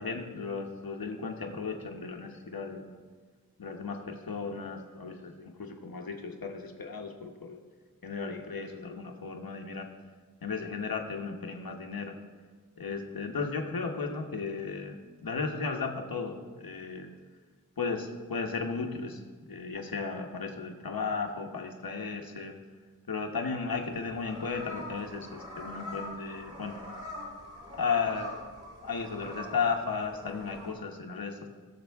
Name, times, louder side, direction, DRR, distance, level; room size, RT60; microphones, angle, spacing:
voice 1, 0.0-3.0 3.6-7.6 8.0-9.9 10.4-12.1 12.8-15.0 15.2-17.1 17.8-22.5 23.1-26.8 27.8-28.3 28.8-31.5, left 5 dB, 90° left, 3 dB, 1.1 m, -35 dB
sound 1, 23.8-30.7, left 1 dB, 65° right, 3.8 m, -44 dB
20.0 x 6.8 x 3.5 m, 1.5 s
wide cardioid pair, 45°, 34 cm